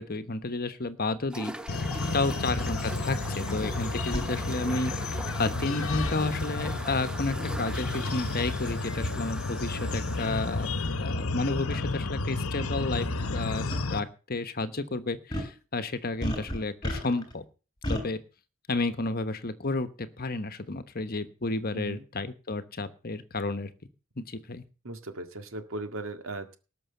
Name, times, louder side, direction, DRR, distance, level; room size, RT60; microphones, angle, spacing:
voice 1, 0.0-1.5 2.1-10.7 11.0-17.4 17.9-18.2 18.7-23.7 24.2-24.6, left 3 dB, 45° left, 11 dB, 1.2 m, -31 dB
sound 1, 1.3-10.9, equal, 5° right, 0.8 m, -41 dB
sound 2, 1.7-14.0, left 3 dB, 85° left, 1.0 m, -32 dB
voice 2, 2.1-2.4 21.7-22.1 24.8-26.6, right 2 dB, 70° right, 7 dB, 1.9 m, -38 dB
sound 3, 2.6-2.7 4.1-4.3 5.9-6.2 7.9-8.1 9.0-9.1 9.9-10.0 10.2-10.4 11.7-11.8 13.2-13.4 13.7-13.8 15.3-15.6 16.2-17.3 17.8-18.1, left 1 dB, 20° left, 3.5 m, -33 dB
19.0 x 6.3 x 6.8 m, 0.35 s
head